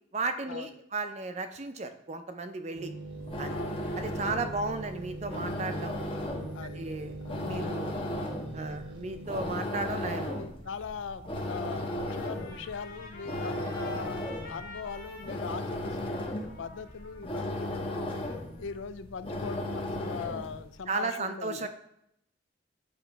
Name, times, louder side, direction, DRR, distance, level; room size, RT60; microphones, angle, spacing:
voice 1, 0.1-2.9 3.4-3.6 4.0-6.0 6.8-7.1 7.5-8.0 8.5-10.4 20.9-21.7, right 3 dB, 35° right, 8 dB, 0.5 m, -34 dB
sound 1, 2.7-9.4, right 2 dB, 65° right, 0.9 m, -42 dB
sound 2, 3.0-20.6, left 1 dB, 25° left, 0.8 m, -36 dB
voice 2, 3.5-3.9 6.5-6.8 7.2-7.4 8.7-8.8 10.4-18.2 18.6-21.7, left 6 dB, 75° left, 13 dB, 0.4 m, -40 dB
Trumpet, 11.4-18.8, left 2 dB, 45° left, 1.2 m, -50 dB
8.0 x 3.0 x 4.5 m, 0.76 s
head